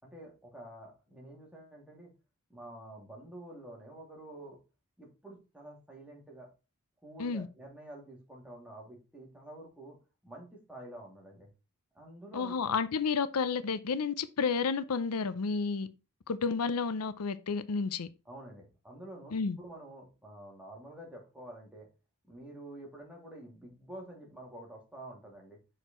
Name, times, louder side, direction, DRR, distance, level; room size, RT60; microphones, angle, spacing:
voice 1, 0.0-2.1 2.5-4.6 5.0-6.5 7.0-10.0 10.2-11.5 11.9-12.7 18.3-21.9 22.2-25.6, right 1 dB, 5° right, 2.7 m, -49 dB
voice 2, 12.3-15.9 16.3-18.1 19.3-19.6, left 5 dB, 75° left, 0.6 m, -31 dB
6.4 x 5.0 x 4.3 m
head